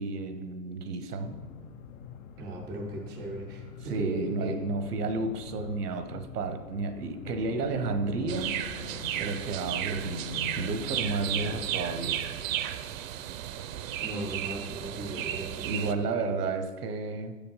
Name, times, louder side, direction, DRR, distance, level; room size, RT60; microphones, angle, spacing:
voice 1, 0.0-1.3 3.8-12.3 15.6-17.4, right 3 dB, 85° right, 9 dB, 1.0 m, -32 dB
sound 1, 1.2-11.7, left 5 dB, 65° left, 0.7 m, -43 dB
voice 2, 2.4-3.6 4.0-4.6 14.0-16.1, right 2 dB, 10° right, -2 dB, 0.3 m, -37 dB
sound 2, 8.3-15.9, right 11 dB, 60° right, 0.6 m, -34 dB
7.0 x 5.1 x 5.4 m, 1.3 s
hypercardioid pair, 135°, 45 cm